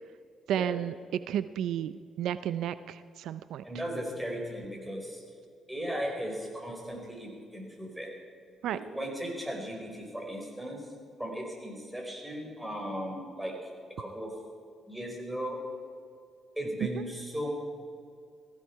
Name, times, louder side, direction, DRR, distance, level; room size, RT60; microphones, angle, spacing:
voice 1, 0.5-3.6 8.6-8.8 16.8-16.9, right 10 dB, 80° right, 13 dB, 0.5 m, -32 dB
voice 2, 3.6-5.2 5.7-8.1 8.6-10.8 11.2-13.5 14.0-14.3 14.9-15.6 16.6-17.5, equal, 5° right, 0 dB, 4.9 m, -37 dB
19.0 x 15.5 x 4.8 m, 2.3 s
cardioid pair, 90°, 0 cm